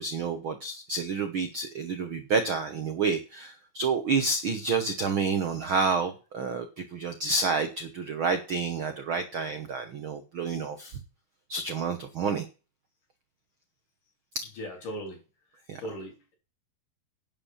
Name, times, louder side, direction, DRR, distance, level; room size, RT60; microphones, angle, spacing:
voice 1, 0.0-6.7 6.9-11.0 11.5-12.5 14.3-14.5 15.7-15.8, right 4 dB, 65° right, 7 dB, 1.3 m, -29 dB
voice 2, 14.6-15.2 15.8-16.3, equal, 65° left, 0 dB, 5.3 m, -38 dB
11.0 x 5.6 x 7.2 m, 0.32 s
omnidirectional pair, 3.9 m